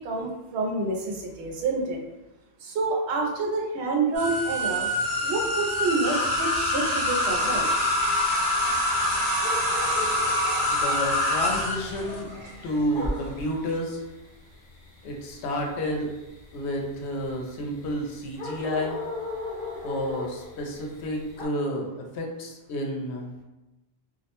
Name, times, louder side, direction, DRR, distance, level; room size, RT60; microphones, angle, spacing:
voice 1, 0.0-2.0 2.6-4.9 5.2-7.7, right 3 dB, 85° right, 0 dB, 0.9 m, -28 dB
sound 1, 4.1-13.1, left 1 dB, 40° right, 0.9 m, -25 dB
sound 2, 7.3-21.5, left 3 dB, 60° left, 0.8 m, -39 dB
voice 2, 10.7-12.3 12.6-14.0 15.0-16.1 16.5-19.0 19.8-21.9 22.1-23.3, equal, 90° left, 1 dB, 0.8 m, -30 dB
2.4 x 2.0 x 2.9 m, 0.97 s
omnidirectional pair, 1.1 m